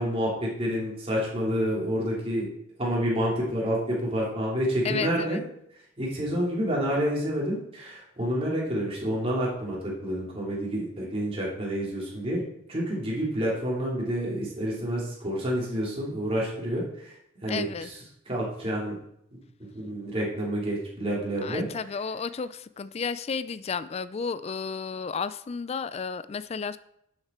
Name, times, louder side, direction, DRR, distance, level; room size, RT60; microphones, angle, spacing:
voice 1, 0.0-2.5 2.8-5.4 6.0-12.4 12.7-18.0 18.3-19.0 19.3-21.6, equal, 30° right, -4 dB, 3.0 m, -29 dB
voice 2, 4.8-5.4 17.5-17.9 21.4-26.8, left 5 dB, 30° left, 15 dB, 0.4 m, -32 dB
11.0 x 6.5 x 4.4 m, 0.75 s
head